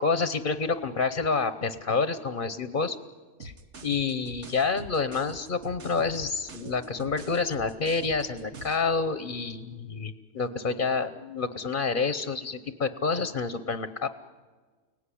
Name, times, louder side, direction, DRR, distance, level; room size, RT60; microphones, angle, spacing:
voice 1, 0.0-3.0 3.4-3.5 3.8-14.1, left 4 dB, 40° left, 11 dB, 1.0 m, -28 dB
sound 1, 3.4-8.9, right 3 dB, 60° right, 1.5 m, -44 dB
30.0 x 18.0 x 10.0 m, 1.4 s
omnidirectional pair, 1.4 m